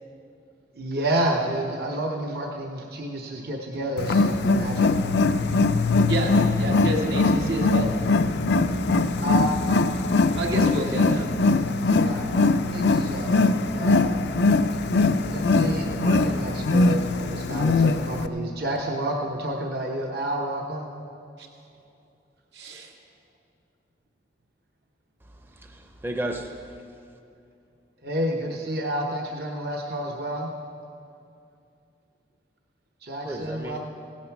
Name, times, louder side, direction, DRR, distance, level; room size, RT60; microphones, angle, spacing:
voice 1, 0.7-4.9 9.2-9.8 11.8-14.3 15.3-20.9 28.0-30.5 33.0-33.8, right 1 dB, 60° right, 0 dB, 0.9 m, -30 dB
Wild animals, 4.0-18.3, left 3 dB, 80° left, 0.5 m, -22 dB
voice 2, 6.1-7.9 10.3-11.3 17.5-17.7 21.4-21.5 22.5-22.9, right 1 dB, 80° right, 0 dB, 1.7 m, -29 dB
voice 3, 25.2-26.8 33.2-33.8, right 1 dB, 10° right, 4 dB, 0.6 m, -34 dB
16.0 x 9.3 x 5.9 m, 2.6 s
head